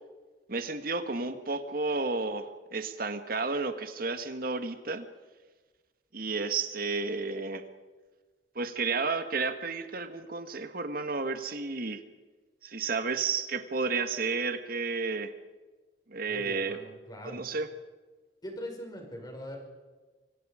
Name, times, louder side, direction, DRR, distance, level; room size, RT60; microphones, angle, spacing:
voice 1, 0.5-5.1 6.1-7.7 8.6-12.0 12.6-15.3 16.1-16.8 17.2-17.7, right 4 dB, 55° right, 8 dB, 1.8 m, -32 dB
voice 2, 16.3-17.4 18.4-19.6, equal, 25° left, 2 dB, 5.6 m, -42 dB
25.0 x 25.0 x 5.1 m, 1.3 s
head